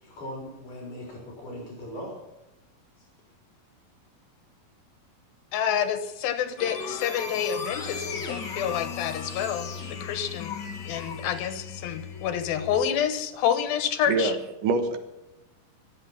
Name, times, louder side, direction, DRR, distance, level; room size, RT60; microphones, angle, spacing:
voice 1, 0.0-2.2 3.0-3.1, equal, 60° left, 5.4 m, -39 dB
voice 2, 5.5-10.6 10.9-14.3, left 9 dB, 90° left, 3.1 m, -28 dB
sound 1, 6.6-12.8, left 6 dB, 45° left, 1.6 m, -37 dB
sound 2, 7.6-12.8, left 6 dB, 30° right, 3.2 m, -42 dB
voice 3, 14.1-15.0, right 3 dB, 70° right, 2.9 m, -25 dB
23.5 x 7.9 x 5.8 m
omnidirectional pair, 4.1 m